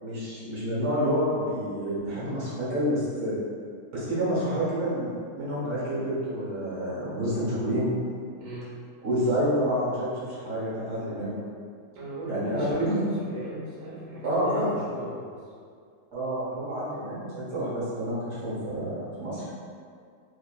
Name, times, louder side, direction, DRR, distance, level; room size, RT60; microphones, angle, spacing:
voice 1, 0.0-3.3 3.9-7.9 9.0-11.3 12.2-13.0 14.2-14.7 16.1-19.5, equal, 50° right, -9 dB, 1.2 m, -28 dB
voice 2, 8.4-8.7 11.9-15.5, right 1 dB, 80° right, -8 dB, 1.2 m, -38 dB
2.8 x 2.6 x 2.2 m, 2.2 s
omnidirectional pair, 1.8 m